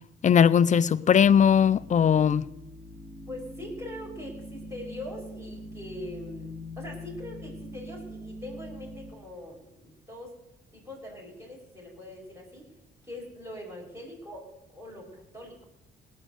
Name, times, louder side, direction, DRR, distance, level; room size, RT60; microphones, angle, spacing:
voice 1, 0.2-2.4, left 8 dB, 40° left, 0.5 m, -19 dB
sound 1, 1.2-9.1, left 1 dB, 85° right, 4.4 m, -43 dB
voice 2, 3.3-10.4 10.7-12.7 13.0-15.6, left 1 dB, 15° right, 5.7 m, -42 dB
18.5 x 6.4 x 7.9 m
cardioid pair, 90°, 20 cm